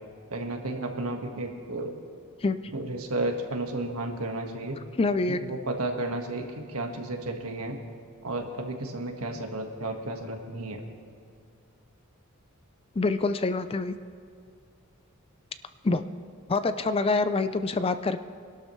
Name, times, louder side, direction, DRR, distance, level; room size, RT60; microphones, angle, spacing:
voice 1, 0.3-1.9 2.7-4.8 5.3-7.8 8.2-10.8 16.7-16.8, right 2 dB, 80° right, 3 dB, 1.6 m, -33 dB
voice 2, 2.4-2.7 5.0-5.4 13.0-13.9 15.8-16.0 16.5-18.2, left 3 dB, 25° left, 11 dB, 0.4 m, -26 dB
24.5 x 12.5 x 3.2 m, 2.3 s
head